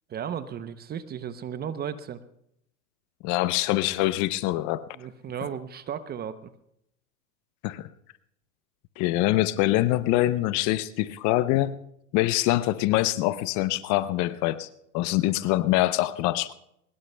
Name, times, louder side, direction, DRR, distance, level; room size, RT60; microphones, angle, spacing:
voice 1, 0.1-2.2 4.9-6.5, right 8 dB, 20° right, 13 dB, 0.7 m, -35 dB
voice 2, 3.2-4.8 7.6-7.9 9.0-11.8 12.1-14.7 14.9-16.5, left 16 dB, 40° left, 15 dB, 0.7 m, -24 dB
22.5 x 20.5 x 2.2 m, 0.77 s
hypercardioid pair, 110°, 45 cm